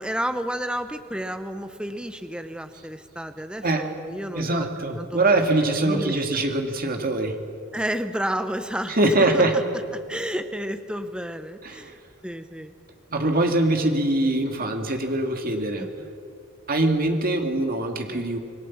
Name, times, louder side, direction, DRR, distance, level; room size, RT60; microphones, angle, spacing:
voice 1, 0.0-4.7 5.0-6.2 7.7-9.6 9.9-12.0 12.2-12.7 13.3-13.5 15.8-16.1, equal, 5° right, 9 dB, 0.9 m, -31 dB
voice 2, 4.3-7.4 8.9-9.6 11.6-11.9 13.1-15.9 16.7-18.4, right 2 dB, 40° right, 4 dB, 2.2 m, -23 dB
27.0 x 20.5 x 7.3 m, 2.5 s
head